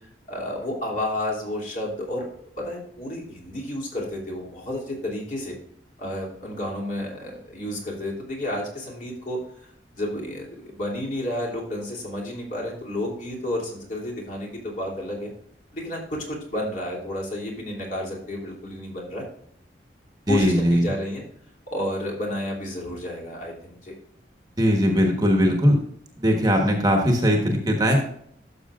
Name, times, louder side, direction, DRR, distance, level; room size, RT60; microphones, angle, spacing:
voice 1, 0.3-5.5 6.0-9.7 9.9-15.3 15.7-19.2 20.3-21.2 21.7-23.9, left 1 dB, 45° left, -2 dB, 2.9 m, -31 dB
voice 2, 20.3-20.9 24.6-25.8 26.2-28.0, equal, 20° right, 2 dB, 1.2 m, -20 dB
12.5 x 6.6 x 2.4 m, 0.67 s
head